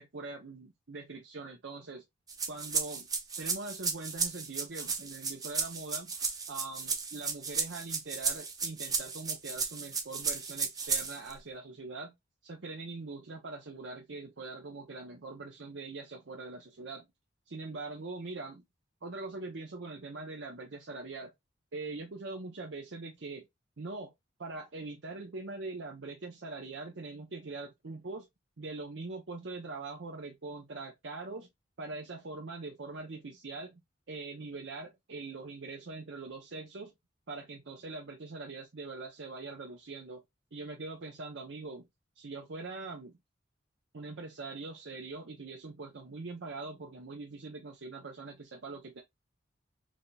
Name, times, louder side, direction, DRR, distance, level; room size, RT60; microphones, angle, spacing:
voice 1, 0.0-2.0 2.5-3.1 3.4-6.1 6.5-12.1 12.4-17.0 17.5-18.6 19.0-21.3 21.7-23.5 23.8-24.1 24.4-28.3 28.6-31.5 31.8-33.8 34.1-36.9 37.3-40.2 40.5-41.9 42.2-43.2 43.9-49.0, right 3 dB, 70° right, 0.7 m, -42 dB
sound 1, 2.3-11.3, right 5 dB, 20° right, 0.8 m, -34 dB
4.8 x 2.7 x 2.2 m
head